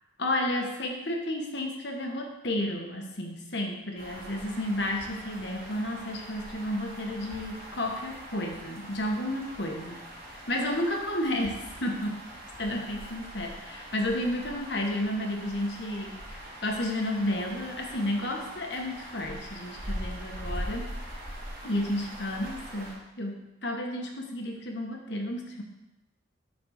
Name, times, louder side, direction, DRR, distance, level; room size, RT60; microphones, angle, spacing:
voice 1, 0.2-10.0 10.5-12.2 12.6-20.9 21.6-25.6, left 1 dB, 60° left, 2 dB, 1.4 m, -32 dB
sound 1, 4.0-22.9, equal, 50° right, 3.0 m, -42 dB
9.5 x 4.3 x 6.5 m, 0.99 s
head